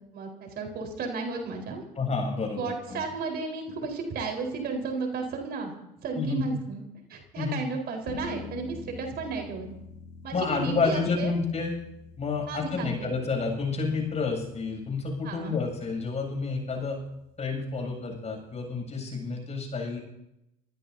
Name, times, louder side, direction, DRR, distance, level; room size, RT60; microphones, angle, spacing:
voice 1, 0.1-1.8 2.6-5.7 6.0-6.8 7.1-9.7 10.2-11.3 12.5-13.1 15.2-15.6, right 4 dB, 50° right, 2 dB, 4.5 m, -33 dB
voice 2, 2.0-2.6 2.9-3.0 6.1-6.4 7.3-7.6 10.3-11.7 12.2-17.0 17.4-20.0, left 4 dB, 35° left, 1 dB, 7.8 m, -29 dB
sound 1, 8.1-18.8, left 5 dB, 60° left, 8.0 m, -48 dB
25.5 x 16.0 x 2.8 m, 0.84 s
hypercardioid pair, 75°, 21 cm